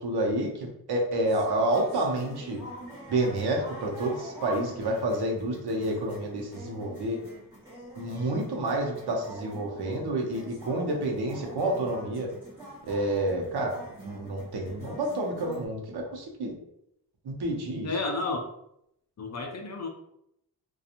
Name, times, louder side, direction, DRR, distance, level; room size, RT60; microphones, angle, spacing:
voice 1, 0.0-2.6 3.1-7.2 8.0-12.3 12.8-13.7 14.0-16.6 17.2-17.9, right 1 dB, 70° right, 0 dB, 0.7 m, -29 dB
sound 1, 1.2-15.7, equal, 10° right, 1.3 m, -45 dB
voice 2, 17.8-18.5 19.2-19.9, left 3 dB, 45° left, 3 dB, 0.4 m, -31 dB
2.8 x 2.3 x 2.5 m, 0.77 s
wide cardioid pair, 120°, 41 cm